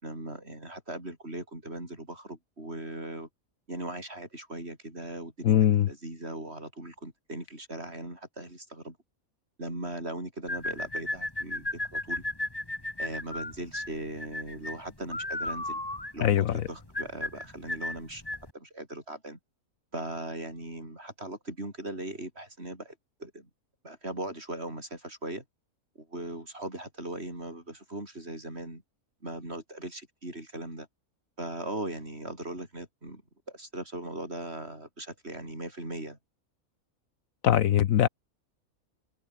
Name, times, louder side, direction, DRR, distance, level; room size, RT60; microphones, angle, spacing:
voice 1, 0.0-3.3 3.7-9.0 9.6-12.2 13.0-15.8 16.1-18.2 18.5-19.4 19.9-23.5 23.8-25.4 26.0-28.8 29.2-30.9 31.4-33.2 33.5-36.2, right 1 dB, 45° right, 7.6 m, -39 dB
voice 2, 5.4-5.9 16.2-16.5 37.4-38.1, left 11 dB, 70° left, 1.1 m, -21 dB
sound 1, 10.5-18.5, left 1 dB, 15° left, 2.3 m, -35 dB
omnidirectional pair, 1.5 m